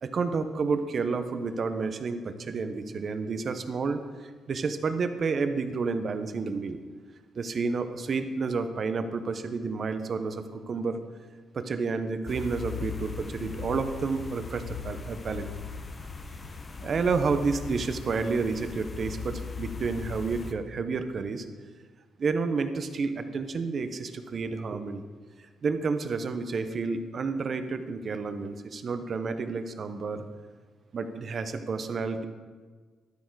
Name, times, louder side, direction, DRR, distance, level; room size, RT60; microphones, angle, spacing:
voice 1, 0.0-6.8 7.3-11.0 11.5-15.5 16.8-21.5 22.2-25.0 25.4-30.2 30.9-32.3, right 4 dB, 45° right, 9 dB, 0.7 m, -30 dB
sound 1, 12.3-20.5, left 5 dB, 30° left, 0.6 m, -39 dB
12.5 x 4.4 x 4.6 m, 1.5 s
cardioid pair, 95°, 0 cm